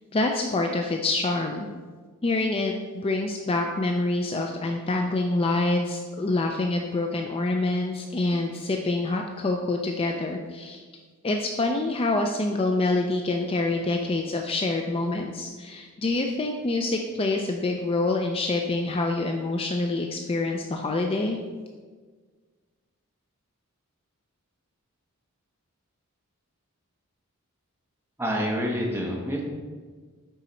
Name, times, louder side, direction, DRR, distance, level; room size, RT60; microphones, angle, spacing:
voice 1, 0.1-1.7 2.2-10.8 11.2-21.4, left 2 dB, 25° left, 3 dB, 0.4 m, -26 dB
voice 2, 28.2-29.4, equal, 10° right, -2 dB, 1.1 m, -27 dB
9.1 x 4.0 x 4.3 m, 1.5 s
head